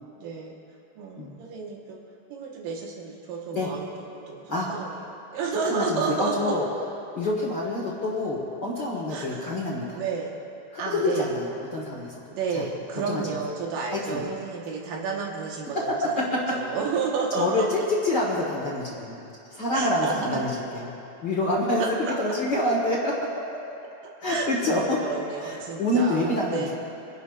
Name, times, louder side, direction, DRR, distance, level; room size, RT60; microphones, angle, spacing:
voice 1, 0.2-0.6 1.0-2.0 2.3-3.9 4.1-4.9 5.3-6.5 9.1-9.5 10.0-10.3 10.8-11.3 12.3-16.2 16.5-17.7 19.7-20.3 21.8-22.2 24.3-26.7, right 5 dB, 90° right, -1 dB, 2.9 m, -31 dB
voice 2, 5.7-6.7 7.1-10.0 10.7-12.7 13.1-13.2 13.9-14.2 15.7-16.4 17.3-19.2 19.5-20.9 21.2-23.6 24.2-25.0 25.4-26.7, left 1 dB, 45° left, -4 dB, 1.6 m, -27 dB
28.0 x 11.0 x 2.5 m, 2.7 s
omnidirectional pair, 3.8 m